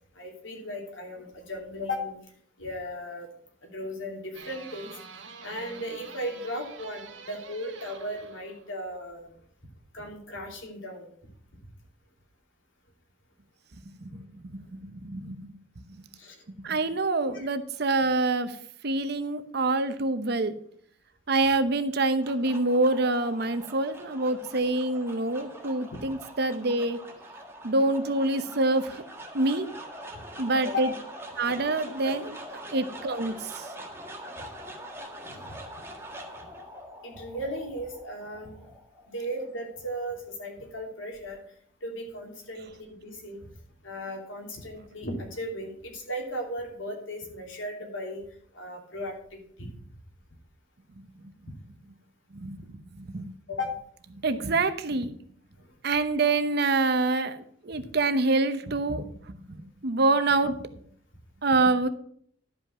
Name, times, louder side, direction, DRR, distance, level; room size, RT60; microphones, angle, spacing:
voice 1, 0.2-2.2 2.6-3.3 3.6-4.9 5.4-9.3 9.9-11.1 16.2-16.4 17.3-17.4 30.6-30.8 32.0-32.1 34.3-34.4 35.3-35.5 37.0-38.7 39.1-41.4 41.8-43.4 43.8-48.2 48.5-49.7 53.5-53.7, equal, 80° left, 1 dB, 2.9 m, -36 dB
sound 1, 4.3-8.8, right 5 dB, 80° right, 1.4 m, -46 dB
voice 2, 14.0-15.6 16.6-18.6 18.8-20.5 21.3-27.0 27.6-29.0 29.3-29.7 30.4-30.9 31.3-32.3 32.7-33.7 51.2-51.3 52.3-53.3 54.2-55.1 55.8-59.1 59.5-60.7 61.4-61.9, right 2 dB, 55° right, 11 dB, 0.8 m, -26 dB
sound 2, 21.9-40.2, right 1 dB, 15° right, 1.6 m, -44 dB
11.5 x 5.5 x 6.1 m, 0.62 s
head